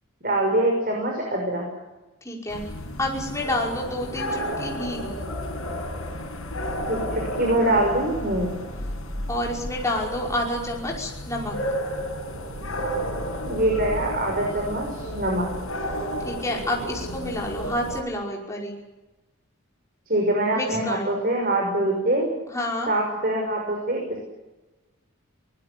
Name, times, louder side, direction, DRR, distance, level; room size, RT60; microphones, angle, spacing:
voice 1, 0.2-1.7 6.9-8.5 13.5-15.5 20.1-22.3 22.9-24.0, right 1 dB, 40° right, 0 dB, 5.9 m, -24 dB
voice 2, 2.2-2.6 3.0-5.2 9.3-11.6 16.2-18.8 20.5-21.2 22.5-22.9, left 1 dB, 15° left, -1 dB, 5.4 m, -29 dB
sound 1, 2.5-18.0, equal, 70° left, 7.3 m, -32 dB
24.0 x 20.5 x 8.4 m, 1.1 s
head